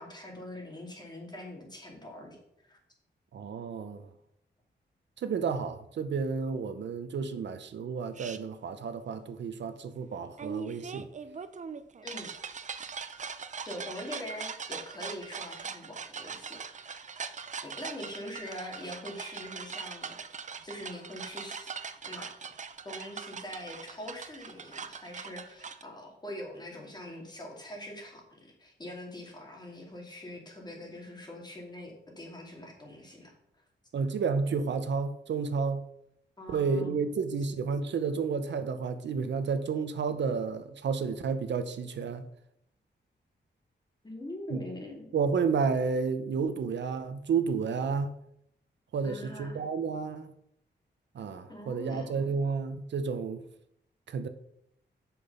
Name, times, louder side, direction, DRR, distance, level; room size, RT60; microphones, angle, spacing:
voice 1, 0.0-2.4 2.7-2.8 12.0-12.3 13.6-17.2 17.6-21.7 22.0-22.3 22.8-33.3 36.4-37.0 44.0-45.1 49.0-49.6 51.5-52.4, left 1 dB, 20° left, 1 dB, 2.3 m, -43 dB
voice 2, 3.3-4.1 5.2-11.1 33.9-35.8 36.5-42.3 44.5-44.6 45.1-48.2 48.9-50.3 51.1-53.4 54.1-54.3, right 5 dB, 75° right, 10 dB, 0.7 m, -31 dB
sound 1, 8.1-8.4 10.4-25.8, right 6 dB, 40° right, 0.6 m, -41 dB
6.9 x 6.1 x 5.4 m, 0.74 s
wide cardioid pair, 120°, 19 cm